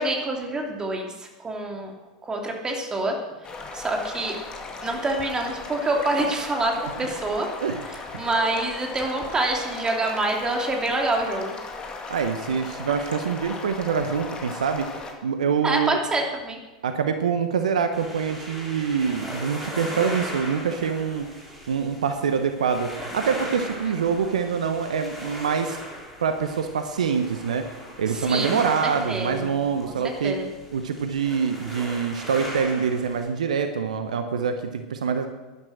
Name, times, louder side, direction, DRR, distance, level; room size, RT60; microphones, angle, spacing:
voice 1, 0.0-1.9 2.2-3.2 3.7-4.4 4.8-7.5 7.9-11.6 15.6-16.6 28.1-28.6 28.8-29.5 29.9-30.5, right 2 dB, 20° right, 1 dB, 2.9 m, -26 dB
sound 1, 3.4-15.1, left 3 dB, 25° left, 2.4 m, -37 dB
voice 2, 12.1-14.9 15.2-16.0 16.8-21.3 21.7-25.8 26.2-27.6 28.0-30.4 30.7-35.3, right 6 dB, 75° right, 8 dB, 1.1 m, -25 dB
sound 2, 17.9-33.3, equal, ahead, 5.0 m, -38 dB
12.0 x 11.0 x 6.3 m, 1.2 s
figure-of-eight pair, 90°, 4 cm